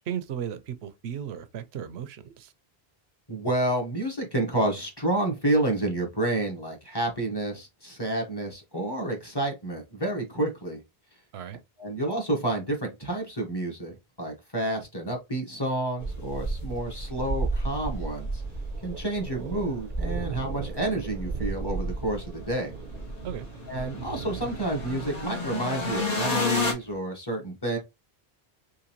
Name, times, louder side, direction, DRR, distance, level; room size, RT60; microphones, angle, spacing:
voice 1, 0.1-2.5 11.3-11.6 23.2-23.5, right 9 dB, 85° right, 0.9 m, -35 dB
voice 2, 3.3-10.8 11.8-18.4 18.8-22.7 23.7-27.8, right 1 dB, 25° left, 1.2 m, -29 dB
sound 1, 16.0-26.7, left 1 dB, 40° left, 1.1 m, -32 dB
Thunder, 17.0-27.0, right 8 dB, 65° right, 0.7 m, -43 dB
3.8 x 3.1 x 3.0 m
omnidirectional pair, 1.1 m